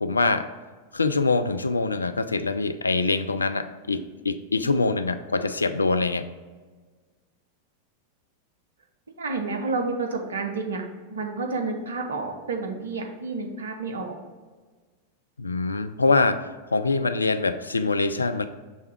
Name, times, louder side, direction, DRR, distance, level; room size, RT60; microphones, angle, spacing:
voice 1, 0.0-0.4 0.9-6.2 15.4-18.5, left 3 dB, 80° left, 11 dB, 0.3 m, -24 dB
voice 2, 9.2-10.8 11.1-14.2, right 3 dB, 70° right, 3 dB, 0.8 m, -30 dB
6.4 x 3.5 x 4.4 m, 1.4 s
figure-of-eight pair, 90°, 0 cm